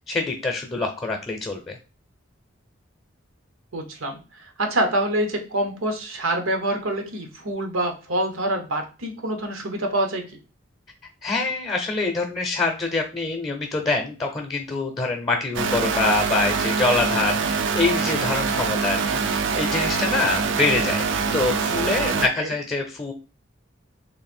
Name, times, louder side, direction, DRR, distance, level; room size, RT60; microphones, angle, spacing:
voice 1, 0.1-1.8 11.2-23.1, left 3 dB, 20° left, 3 dB, 0.6 m, -25 dB
voice 2, 3.7-10.4 22.1-22.5, right 1 dB, 90° right, 4 dB, 1.0 m, -26 dB
sound 1, 15.5-22.3, right 5 dB, 65° right, 0.4 m, -24 dB
3.2 x 2.6 x 4.3 m, 0.32 s
head